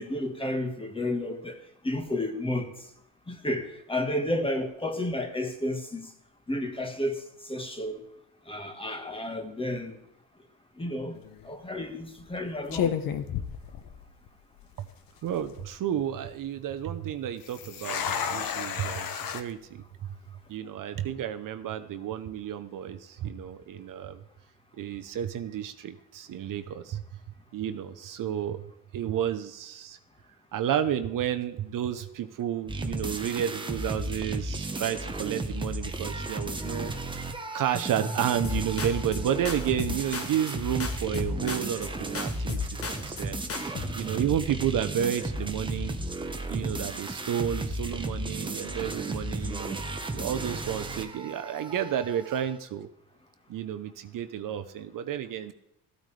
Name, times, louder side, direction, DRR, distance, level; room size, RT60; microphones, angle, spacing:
voice 1, 0.0-1.6 1.8-2.7 3.3-6.1 6.5-7.2 7.5-8.0 8.5-10.0 10.8-11.2 11.4-13.0 33.2-33.3 42.9-43.0, left 1 dB, 15° left, 6 dB, 1.4 m, -31 dB
sound 1, 11.1-11.4 12.2-12.4 12.7-14.3 14.6-14.7 15.3-15.7 17.4-19.4, left 8 dB, 60° left, 1.0 m, -32 dB
voice 2, 15.2-19.8 20.5-24.2 24.8-27.0 27.5-28.6 28.9-30.0 30.5-36.9 37.5-43.4 44.0-46.0 46.5-52.9 53.5-55.5, right 10 dB, 55° right, 10 dB, 0.8 m, -31 dB
sound 2, 32.7-52.6, right 2 dB, 15° right, 1.0 m, -34 dB
sound 3, 38.4-39.2 39.5-40.6 40.8-41.9 42.1-43.2 43.5-43.9, left 5 dB, 35° left, 1.4 m, -36 dB
14.0 x 9.1 x 3.3 m, 0.78 s
cardioid pair, 110°, 38 cm